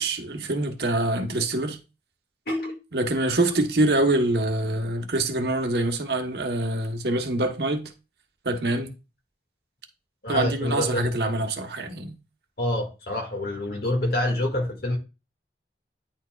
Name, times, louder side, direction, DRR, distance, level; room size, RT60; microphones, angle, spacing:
voice 1, 0.0-1.8 2.9-7.9 8.4-8.9 10.3-12.1, right 2 dB, 65° right, 1.0 m, -25 dB
voice 2, 2.5-2.8 10.2-11.1 12.6-15.0, left 1 dB, 60° left, 1.8 m, -26 dB
9.7 x 4.6 x 2.3 m
head